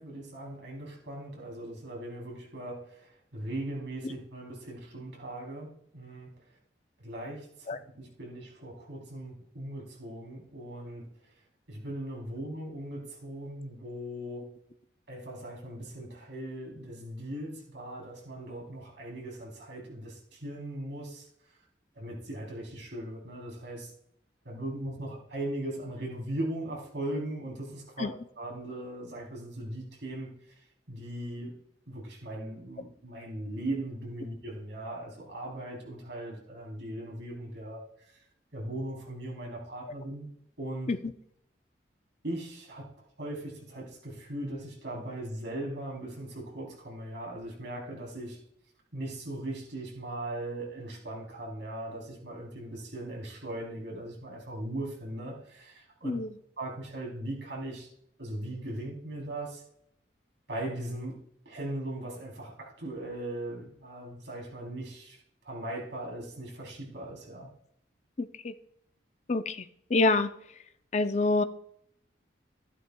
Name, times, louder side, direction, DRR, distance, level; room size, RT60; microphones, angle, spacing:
voice 1, 0.0-6.3 7.0-11.1 11.7-14.5 15.1-21.3 21.9-23.9 24.4-28.1 28.4-30.3 30.9-31.5 31.9-37.8 38.5-40.3 40.6-40.9 42.2-42.9 43.2-48.4 48.9-56.1 56.6-57.9 58.2-59.6 60.5-61.2 61.4-65.2 65.4-67.5, right 1 dB, 80° right, -1 dB, 3.3 m, -39 dB
voice 2, 68.2-68.5 69.3-69.6 69.9-70.3 70.9-71.4, left 3 dB, 40° left, 10 dB, 0.5 m, -26 dB
13.0 x 11.0 x 2.3 m, 0.71 s
head